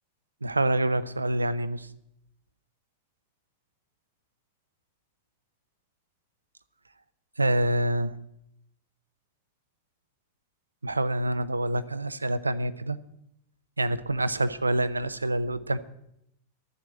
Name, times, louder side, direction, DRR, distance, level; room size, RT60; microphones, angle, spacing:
voice 1, 0.4-1.9 7.4-8.2 10.8-13.0 13.8-15.8, right 1 dB, 80° right, 15 dB, 0.6 m, -26 dB
12.0 x 7.7 x 8.8 m, 0.78 s
figure-of-eight pair, 90°, 0 cm